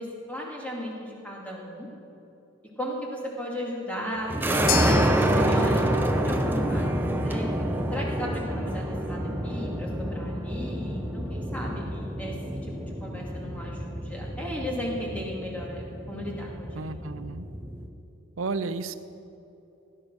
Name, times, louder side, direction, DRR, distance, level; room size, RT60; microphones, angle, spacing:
voice 1, 0.0-1.9 2.8-5.8 6.1-7.5 7.9-12.4 12.6-16.9, equal, 5° left, -3 dB, 2.6 m, -36 dB
sound 1, 4.3-17.9, right 1 dB, 10° right, 0.8 m, -28 dB
sound 2, 4.7-13.1, left 10 dB, 80° left, 0.6 m, -39 dB
voice 2, 16.7-17.5 18.4-18.9, right 4 dB, 85° right, 12 dB, 0.7 m, -32 dB
17.0 x 11.0 x 6.4 m, 2.8 s
head